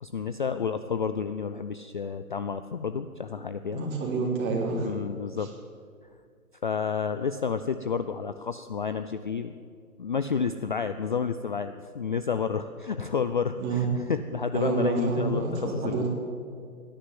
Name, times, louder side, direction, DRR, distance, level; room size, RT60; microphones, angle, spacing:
voice 1, 0.0-3.8 4.8-5.5 6.6-9.5 10.0-16.1, left 6 dB, 35° left, 10 dB, 0.4 m, -30 dB
voice 2, 3.7-4.9 13.6-13.9 14.5-16.1, right 4 dB, 25° right, -2 dB, 3.4 m, -28 dB
18.5 x 10.5 x 7.5 m, 2.3 s
hypercardioid pair, 140°, 44 cm